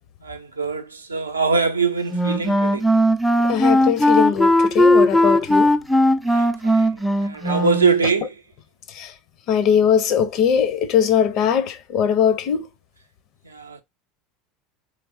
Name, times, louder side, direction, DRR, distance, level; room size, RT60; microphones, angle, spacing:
voice 1, 0.2-2.9 6.2-8.4 13.4-13.8, right 4 dB, 85° right, 0.4 m, -23 dB
Wind instrument woodwind instrument, 2.1-8.0, left 1 dB, ahead, 0.3 m, -18 dB
voice 2, 3.5-5.7 8.9-9.1 9.5-12.7, left 8 dB, 50° left, 0.6 m, -20 dB
3.2 x 3.2 x 2.4 m
figure-of-eight pair, 75°, 0 cm